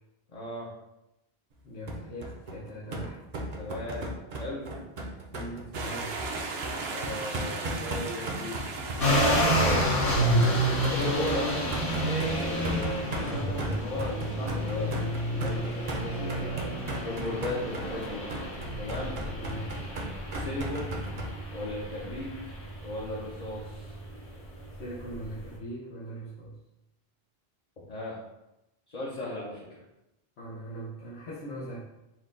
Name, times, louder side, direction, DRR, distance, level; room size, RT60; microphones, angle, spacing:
voice 1, 0.3-0.7 3.5-4.1 4.4-4.6 6.9-8.6 9.5-10.0 10.9-16.7 17.0-18.2 18.8-19.2 20.3-21.0 21.5-22.5 22.8-23.9 27.9-28.2 28.9-29.6, left 1 dB, 45° left, -5 dB, 0.7 m, -36 dB
voice 2, 1.6-3.2 5.3-6.2 19.3-19.8 24.8-26.6 30.4-31.8, right 1 dB, 80° left, -7 dB, 1.0 m, -40 dB
sound 1, 1.9-21.3, right 1 dB, 45° right, 0.7 m, -36 dB
sound 2, 5.7-11.6, right 3 dB, 75° right, 0.9 m, -38 dB
sound 3, 9.0-25.5, equal, 60° left, 1.3 m, -30 dB
4.4 x 2.2 x 3.7 m, 0.93 s
omnidirectional pair, 1.1 m